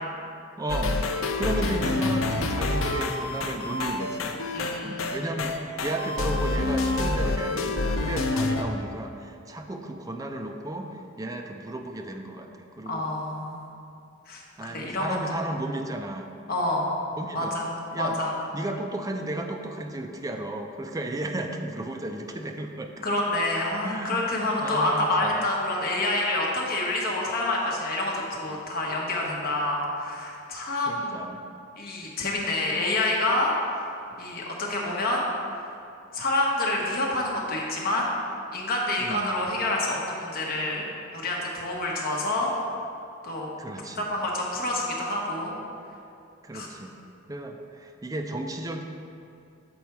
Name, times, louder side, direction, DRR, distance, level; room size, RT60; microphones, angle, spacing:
voice 1, 0.6-1.0 1.3-4.3 4.8-13.1 14.6-16.3 17.2-17.6 17.9-18.2 18.5-23.1 23.8-25.5 30.9-31.4 39.0-39.3 43.6-44.1 46.4-46.9 47.3-48.8, right 1 dB, 20° right, 4 dB, 0.4 m, -34 dB
sound 1, 0.7-8.6, left 2 dB, 75° left, 0.5 m, -27 dB
voice 2, 4.5-5.2 12.8-13.6 14.3-15.4 16.5-16.9 17.3-17.7 18.0-18.3 23.0-31.2 31.8-33.9 34.2-35.3 35.5-35.7 36.1-38.1 38.5-40.8 41.1-42.5 43.2-43.5 44.0-45.5 46.5-46.7, left 2 dB, 50° left, -2 dB, 1.1 m, -27 dB
7.0 x 4.2 x 4.6 m, 2.5 s
head